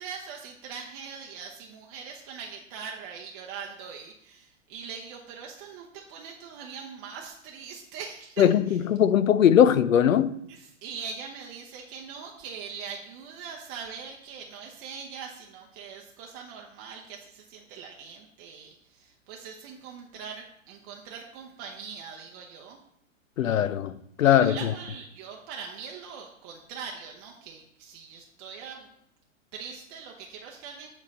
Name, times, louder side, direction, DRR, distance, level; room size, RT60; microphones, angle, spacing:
voice 1, 0.0-8.8 10.5-22.8 24.2-28.9 29.5-30.9, right 6 dB, 30° right, 0.6 m, -42 dB
voice 2, 8.4-10.4 23.4-24.7, left 9 dB, 85° left, 0.5 m, -20 dB
7.1 x 4.0 x 4.1 m
hypercardioid pair, 120°, 39 cm